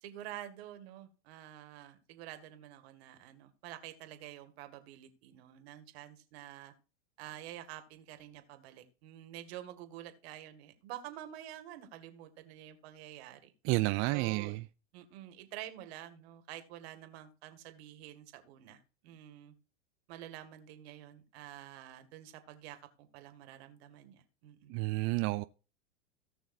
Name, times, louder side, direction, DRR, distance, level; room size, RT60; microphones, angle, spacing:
voice 1, 0.0-6.7 7.2-13.5 14.1-14.5 14.9-19.5 20.1-24.8, right 12 dB, 65° right, 2.0 m, -48 dB
voice 2, 13.7-14.6 24.7-25.4, right 21 dB, 40° right, 0.4 m, -30 dB
17.5 x 6.1 x 2.6 m
hypercardioid pair, 115°, 34 cm